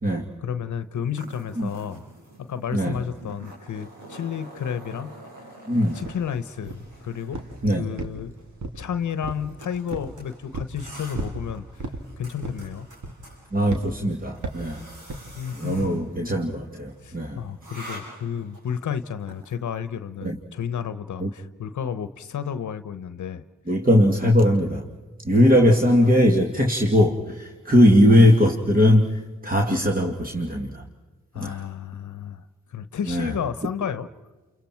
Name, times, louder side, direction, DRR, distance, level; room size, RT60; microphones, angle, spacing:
voice 1, 0.4-2.0 2.5-5.1 5.9-7.4 7.8-8.3 8.7-12.9 15.3-16.0 17.0-23.4 31.3-34.1, left 8 dB, 70° left, 12 dB, 1.0 m, -32 dB
sound 1, 1.1-19.4, right 1 dB, 85° right, 7.8 m, -46 dB
voice 2, 5.7-6.0 7.6-7.8 13.5-14.8 15.5-17.4 20.2-20.4 21.2-21.3 23.7-24.8 25.2-30.8 31.4-31.6 33.1-33.3, equal, 30° right, 1 dB, 2.6 m, -20 dB
sound 2, 6.0-6.2 6.7-7.0 7.3-7.6 8.0-8.9 9.2-9.5 9.9-10.1 10.5-10.8 11.1-11.4 11.8-12.0 12.4-12.7 13.0-13.3 13.7-13.9 14.4-14.7 15.1-15.3 15.8-16.0, right 2 dB, 65° right, 3.0 m, -33 dB
29.5 x 29.0 x 4.6 m, 1.3 s
supercardioid pair, 45°, 30 cm